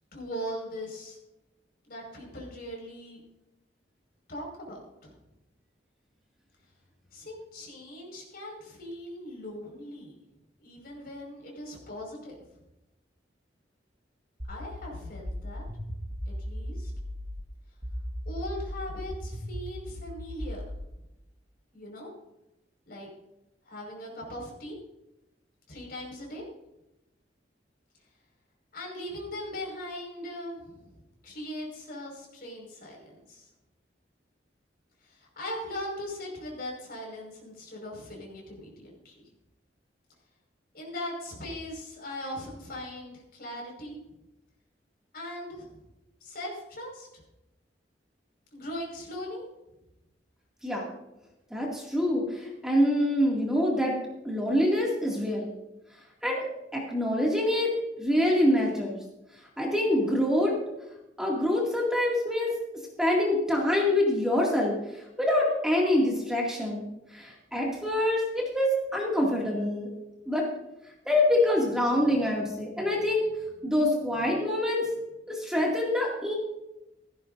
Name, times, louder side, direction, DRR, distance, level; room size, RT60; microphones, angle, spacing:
voice 1, 0.1-1.2 1.8-3.2 4.3-5.1 7.1-10.2 10.6-12.3 14.5-15.6 16.3-16.9 18.2-20.6 21.7-22.1 22.8-23.1 23.7-24.8 25.7-26.4 28.7-30.9 31.2-33.5 35.0-39.2 40.7-44.0 45.1-45.7 46.2-47.2 48.5-49.4, left 1 dB, 55° left, -1 dB, 5.2 m, -39 dB
sound 1, 14.4-17.4 17.8-20.8, left 1 dB, 25° right, 1.6 m, -37 dB
voice 2, 51.5-54.0 54.2-55.5 56.2-56.4 56.7-59.0 59.6-60.5 61.2-62.5 63.0-69.9 70.3-70.5 71.1-73.3 73.6-74.9 75.3-76.3, left 1 dB, 5° right, -3 dB, 2.3 m, -25 dB
16.0 x 15.0 x 2.6 m, 0.93 s
head